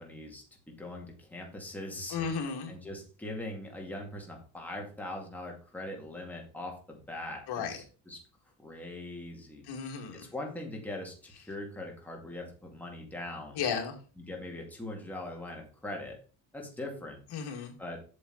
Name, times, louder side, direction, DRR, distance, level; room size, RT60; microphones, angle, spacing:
voice 1, 0.0-2.2 2.7-8.2 8.6-9.6 10.1-13.6 14.2-16.2 16.5-17.2 17.8-18.0, left 1 dB, 5° left, 0 dB, 2.3 m, -41 dB
voice 2, 2.1-2.7 7.5-7.8 9.7-10.3 13.6-14.0 17.3-17.7, left 6 dB, 65° left, 3 dB, 2.3 m, -34 dB
8.2 x 7.0 x 4.1 m, 0.37 s
cardioid pair, 145°, 42 cm